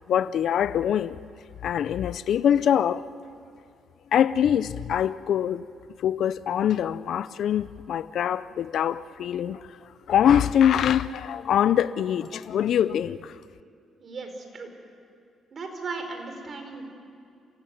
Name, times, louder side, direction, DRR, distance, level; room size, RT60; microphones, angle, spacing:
voice 1, 0.1-1.2 1.6-3.1 4.1-5.6 6.0-9.8 10.1-13.4, left 9 dB, 70° left, 0.6 m, -24 dB
voice 2, 14.0-14.7 15.5-16.8, right 4 dB, 45° right, 4.5 m, -36 dB
28.0 x 16.0 x 9.4 m
cardioid pair, 90°, 0 cm